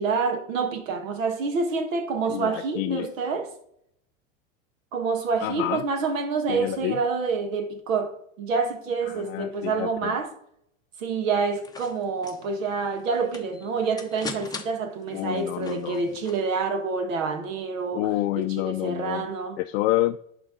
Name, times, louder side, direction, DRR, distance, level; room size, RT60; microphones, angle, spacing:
voice 1, 0.0-3.5 4.9-10.3 11.0-19.6, right 4 dB, 85° right, 1.7 m, -27 dB
voice 2, 2.3-3.1 5.4-5.8 6.5-7.0 9.1-10.2 15.1-16.0 17.9-19.3 19.6-20.2, left 16 dB, 55° left, 0.5 m, -28 dB
sound 1, 11.3-16.6, left 4 dB, 10° left, 0.9 m, -42 dB
11.0 x 3.9 x 3.9 m
supercardioid pair, 125°, 39 cm